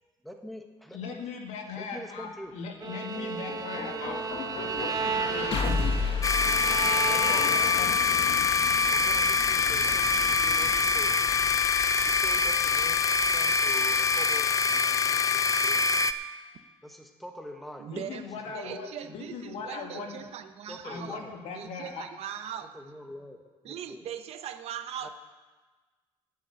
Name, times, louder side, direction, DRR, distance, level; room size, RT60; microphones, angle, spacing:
voice 1, 0.2-1.2 1.8-2.6 6.8-7.6 8.9-11.1 12.0-15.8 16.8-17.9 18.5-18.8 20.0-20.1 20.7-21.3 22.7-24.0 25.0-25.1, equal, ahead, 4 dB, 1.3 m, -45 dB
voice 2, 0.9-2.3 2.5-6.0 6.7-8.0 17.9-20.2 20.8-22.0, left 5 dB, 75° left, 2 dB, 1.9 m, -39 dB
sound 1, 2.5-14.6, left 4 dB, 55° left, 1.4 m, -36 dB
Bowed string instrument, 2.8-8.0, right 6 dB, 35° right, 0.9 m, -34 dB
sound 2, 6.2-16.1, left 5 dB, 30° left, 0.5 m, -24 dB
voice 3, 17.8-18.3 18.5-21.2 21.5-22.7 23.6-25.1, right 9 dB, 65° right, 9 dB, 0.9 m, -40 dB
8.6 x 8.4 x 8.9 m, 1.3 s
cardioid pair, 115°, 11 cm